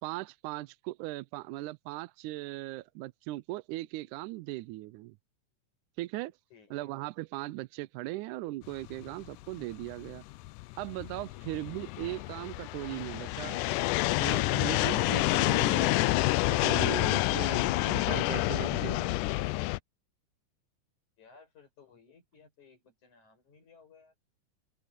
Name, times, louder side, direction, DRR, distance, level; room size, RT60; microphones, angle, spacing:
voice 1, 0.0-5.2 6.0-6.3 6.7-10.2 10.8-13.6 14.2-16.0 16.5-19.2, right 18 dB, 85° right, 2.0 m, -38 dB
voice 2, 6.5-6.9 11.3-11.7 21.2-24.1, left 5 dB, 70° left, 7.8 m, -59 dB
sound 1, 8.9-19.8, left 20 dB, 90° left, 2.1 m, -28 dB
open air
omnidirectional pair, 3.6 m